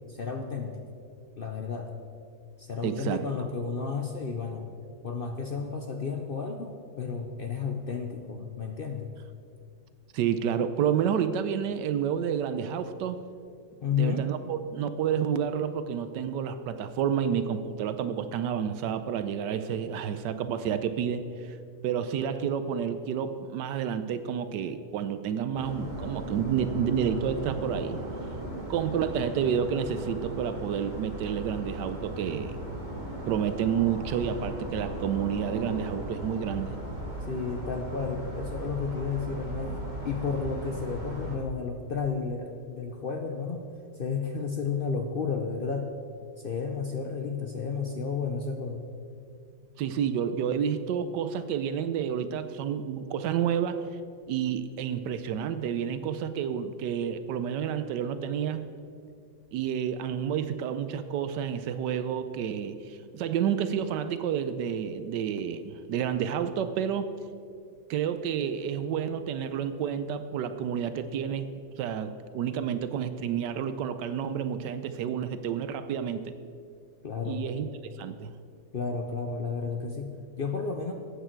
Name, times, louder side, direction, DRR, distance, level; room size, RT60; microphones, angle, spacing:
voice 1, 0.1-0.8 1.4-1.9 2.6-4.7 5.0-9.1 13.8-14.3 37.3-39.7 40.0-43.6 44.0-45.9 46.4-48.8 77.0-77.4 78.7-80.9, left 5 dB, 60° left, 3 dB, 0.5 m, -32 dB
voice 2, 2.8-3.5 10.1-13.2 13.9-21.6 21.8-28.0 28.7-32.6 33.3-36.8 49.8-53.8 54.3-58.7 59.5-67.1 67.9-71.5 71.8-76.4 77.2-77.7 78.0-78.3, right 8 dB, 85° right, 11 dB, 1.2 m, -30 dB
sound 1, 25.5-41.4, right 1 dB, 25° right, 1.8 m, -37 dB
13.5 x 8.9 x 4.5 m, 2.3 s
omnidirectional pair, 1.9 m